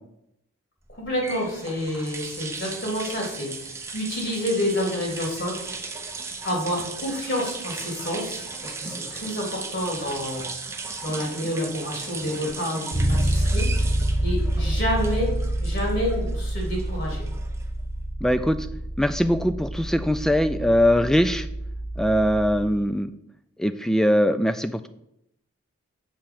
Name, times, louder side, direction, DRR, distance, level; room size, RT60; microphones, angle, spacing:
sound 1, 0.9-17.9, right 4 dB, 15° right, 0.8 m, -37 dB
voice 1, 1.0-5.7 6.4-10.4 11.0-13.7 14.2-15.3 15.6-17.2, left 1 dB, 55° left, -1 dB, 3.2 m, -29 dB
Bass guitar, 12.9-22.8, right 1 dB, 75° left, 3.2 m, -27 dB
voice 2, 18.2-18.6 19.0-21.5 22.0-23.1 23.6-24.9, equal, ahead, 11 dB, 0.3 m, -21 dB
7.5 x 4.7 x 7.0 m, 0.79 s
head